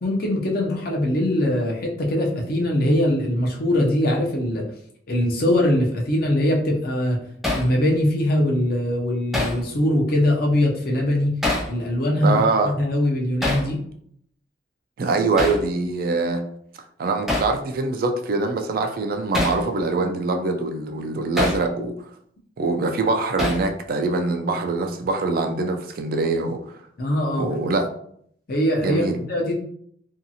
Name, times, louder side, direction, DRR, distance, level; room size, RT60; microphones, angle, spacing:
voice 1, 0.0-4.7 5.1-7.2 7.5-11.4 11.7-13.8 27.0-27.5 28.5-29.5, left 1 dB, 55° left, 0 dB, 0.6 m, -22 dB
Hammer, 7.4-7.7 9.3-9.6 11.4-11.7 13.4-13.7 15.4-15.6 17.3-17.5 19.3-19.6 21.4-21.6 23.4-23.7, left 2 dB, ahead, 0.5 m, -24 dB
voice 2, 12.2-12.7 15.0-16.4 17.0-22.1 22.6-26.8 27.4-27.9 28.8-29.2, right 3 dB, 55° right, 5 dB, 0.3 m, -23 dB
2.7 x 2.4 x 2.7 m, 0.67 s
head